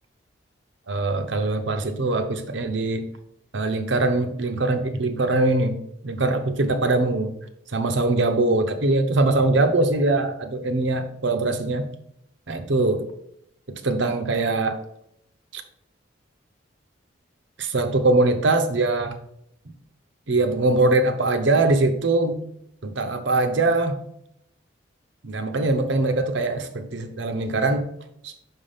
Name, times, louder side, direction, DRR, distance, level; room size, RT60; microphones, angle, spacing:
voice 1, 0.9-3.1 3.5-5.8 6.0-7.3 7.7-11.9 12.5-13.0 13.7-14.8 15.5-15.6 17.6-19.2 20.3-22.4 22.8-24.0 25.2-27.9 28.2-28.3, right 2 dB, 65° right, 8 dB, 0.8 m, -22 dB
6.0 x 3.6 x 5.5 m, 0.73 s
head